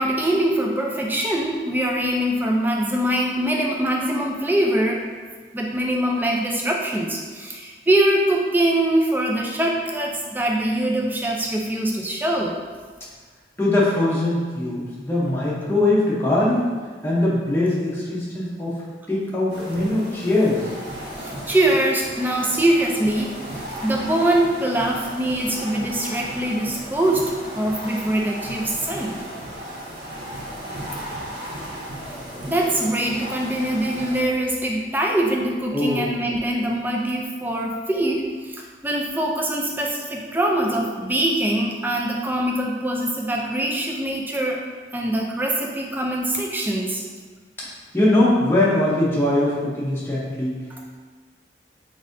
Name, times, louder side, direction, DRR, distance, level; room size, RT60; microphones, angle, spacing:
voice 1, 0.0-5.0 5.5-12.6 21.2-29.2 32.5-44.6 44.9-47.0, right 1 dB, 10° right, -1 dB, 0.4 m, -23 dB
voice 2, 13.6-16.7 17.0-18.7 19.1-20.6 35.7-36.1 47.9-50.5, left 1 dB, 15° left, -7 dB, 0.8 m, -21 dB
sound 1, 19.5-34.2, equal, 75° right, 1.2 m, -35 dB
4.0 x 3.6 x 2.6 m, 1.5 s
head